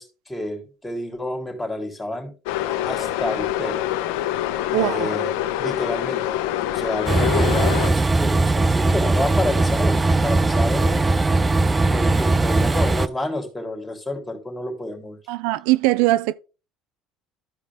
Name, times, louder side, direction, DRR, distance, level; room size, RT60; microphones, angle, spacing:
voice 1, 0.0-2.3 2.8-3.9 4.7-6.4 6.7-11.1 11.9-15.2, left 1 dB, 10° left, 3.5 m, -29 dB
sound 1, 2.5-7.9, left 13 dB, 80° left, 0.7 m, -25 dB
voice 2, 4.7-5.2 15.3-16.3, right 17 dB, 80° right, 0.3 m, -21 dB
Train, 7.1-13.1, right 2 dB, 20° right, 0.5 m, -19 dB
13.5 x 4.9 x 3.5 m
supercardioid pair, 90°, 0 cm